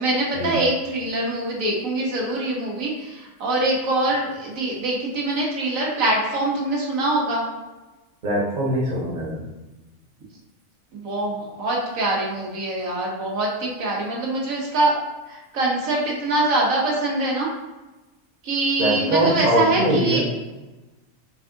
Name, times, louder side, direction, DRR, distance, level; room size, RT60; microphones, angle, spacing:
voice 1, 0.0-7.4 10.9-15.0 15.3-17.5 18.4-20.2, right 2 dB, 85° right, -3 dB, 1.4 m, -24 dB
voice 2, 8.2-9.4 18.8-20.2, right 1 dB, 40° right, -3 dB, 1.0 m, -22 dB
4.6 x 3.4 x 2.5 m, 1.1 s
omnidirectional pair, 1.4 m